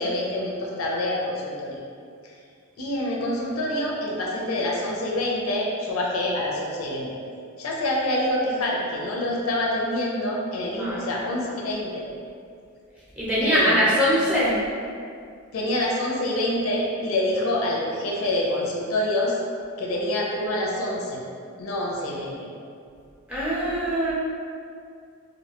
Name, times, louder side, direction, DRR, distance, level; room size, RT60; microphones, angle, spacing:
voice 1, 0.0-1.8 2.8-7.2 7.6-12.1 13.4-13.8 15.5-19.4 19.8-21.2 21.6-22.5, left 1 dB, 90° left, -2 dB, 0.5 m, -26 dB
voice 2, 13.2-14.6 23.3-24.1, equal, 5° right, -9 dB, 0.6 m, -22 dB
2.5 x 2.2 x 2.8 m, 2.3 s
head